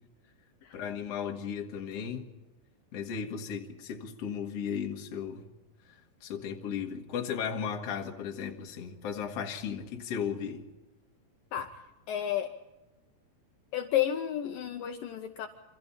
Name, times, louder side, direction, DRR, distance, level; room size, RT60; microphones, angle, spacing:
voice 1, 0.7-2.3 2.9-5.5 5.9-10.7, left 7 dB, 50° left, 2 dB, 2.0 m, -36 dB
voice 2, 12.1-12.5 13.7-15.5, left 11 dB, 80° left, 5 dB, 2.0 m, -31 dB
27.5 x 25.5 x 4.3 m, 1.1 s
omnidirectional pair, 5.1 m